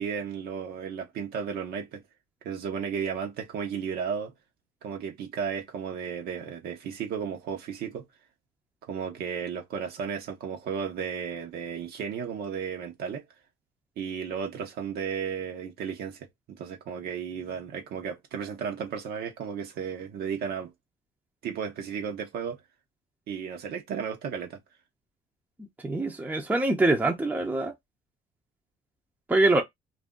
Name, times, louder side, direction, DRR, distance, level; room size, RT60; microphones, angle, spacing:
voice 1, 0.0-2.0 2.4-4.3 4.8-8.0 8.8-13.2 14.0-20.7 21.4-22.6 23.3-24.6, right 7 dB, 70° right, 0.8 m, -34 dB
voice 2, 25.8-27.7 29.3-29.6, right 2 dB, 10° right, 0.6 m, -24 dB
2.5 x 2.1 x 3.6 m
cardioid pair, 110°, 17 cm